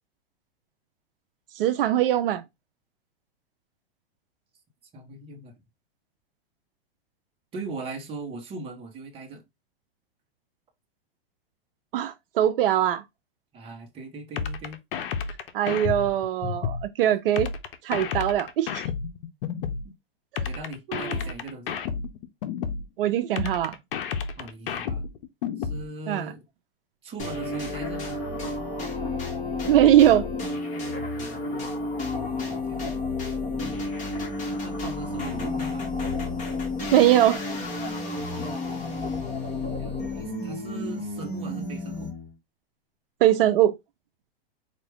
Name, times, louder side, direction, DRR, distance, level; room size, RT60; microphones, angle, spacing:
voice 1, 1.5-2.4 11.9-13.0 15.5-17.5 17.8-18.8 20.3-20.5 20.9-21.2 23.0-23.8 26.1-26.3 29.7-30.3 36.9-37.4 43.2-43.8, right 12 dB, 65° right, 0.5 m, -21 dB
voice 2, 4.9-5.5 7.5-9.4 13.5-14.8 19.7-19.9 20.4-21.8 24.3-25.1 25.6-26.4 27.0-28.2 30.9-31.4 32.3-33.9 34.6-35.9 38.1-38.6 39.8-42.1, right 2 dB, 20° right, 0.9 m, -40 dB
sound 1, 14.4-16.8 17.4-19.8 20.4-22.8 23.4-25.8, left 6 dB, 65° left, 0.7 m, -30 dB
sound 2, 27.2-42.3, left 2 dB, 25° left, 1.7 m, -31 dB
4.3 x 2.4 x 3.4 m
hypercardioid pair, 130°, 30 cm